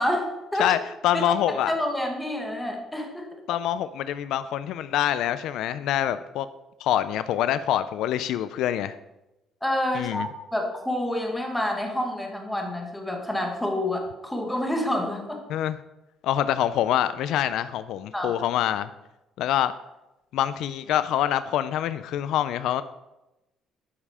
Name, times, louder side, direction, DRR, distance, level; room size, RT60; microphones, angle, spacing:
voice 1, 0.0-0.7 1.5-3.4 9.6-15.4 18.1-18.3, left 1 dB, 5° left, 1 dB, 1.5 m, -28 dB
voice 2, 0.6-1.7 3.5-6.5 6.8-8.9 9.9-10.3 15.5-15.8 16.2-18.9 19.4-19.7 20.3-22.8, left 11 dB, 75° left, 13 dB, 0.4 m, -25 dB
11.0 x 5.5 x 4.9 m, 0.97 s
cardioid pair, 150°, 0 cm